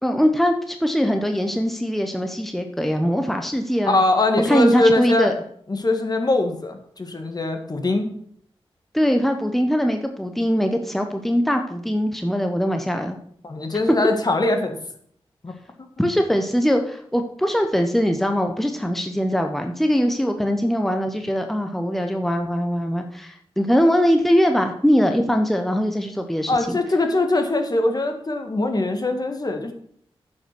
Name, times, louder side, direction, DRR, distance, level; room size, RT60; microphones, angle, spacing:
voice 1, 0.0-4.0 4.5-5.3 8.9-13.2 16.0-26.8, equal, ahead, 5 dB, 1.0 m, -21 dB
voice 2, 3.8-5.3 5.7-8.1 13.4-14.8 15.4-15.5 26.5-29.7, left 2 dB, 40° left, 5 dB, 1.6 m, -22 dB
9.2 x 5.7 x 6.0 m, 0.63 s
cardioid pair, 60°, 10 cm